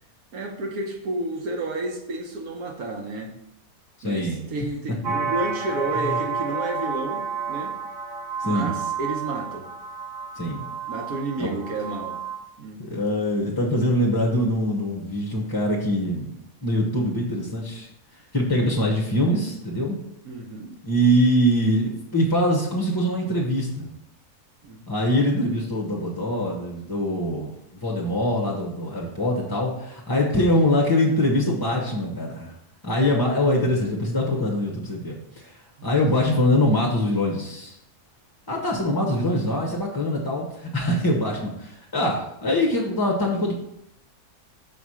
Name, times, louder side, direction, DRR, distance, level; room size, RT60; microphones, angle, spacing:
voice 1, 0.3-3.3 4.0-7.8 8.4-9.7 10.9-12.2 12.6-13.1 20.2-20.7 24.6-24.8 35.8-35.9 38.7-39.0, right 2 dB, 75° right, 2 dB, 1.5 m, -31 dB
voice 2, 4.0-4.4 5.9-6.1 8.4-8.7 10.4-10.7 11.4-11.5 12.8-16.3 16.6-20.0 20.8-23.9 24.9-32.5 32.8-37.7 38.5-43.5, left 1 dB, 20° left, -1 dB, 0.7 m, -23 dB
sound 1, 5.0-12.4, right 6 dB, 40° right, 1.2 m, -30 dB
5.9 x 4.2 x 6.2 m, 0.81 s
omnidirectional pair, 1.6 m